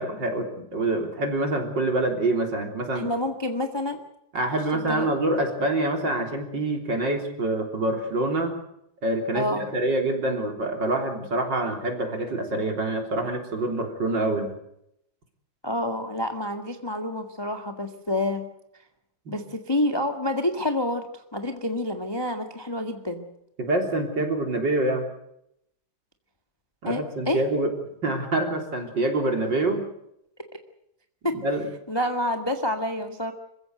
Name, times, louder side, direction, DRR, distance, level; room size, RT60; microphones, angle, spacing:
voice 1, 0.0-3.1 4.3-8.6 9.0-14.6 19.3-19.4 23.6-25.1 26.8-27.7 28.0-29.8 31.3-31.7, right 2 dB, 35° right, 4 dB, 4.0 m, -26 dB
voice 2, 2.9-4.0 4.7-5.1 9.3-9.6 15.6-18.5 19.3-21.0 21.3-23.3 26.8-27.4 31.2-31.3 31.9-33.3, left 1 dB, 15° left, 5 dB, 1.0 m, -28 dB
27.0 x 16.0 x 8.0 m, 0.78 s
omnidirectional pair, 3.6 m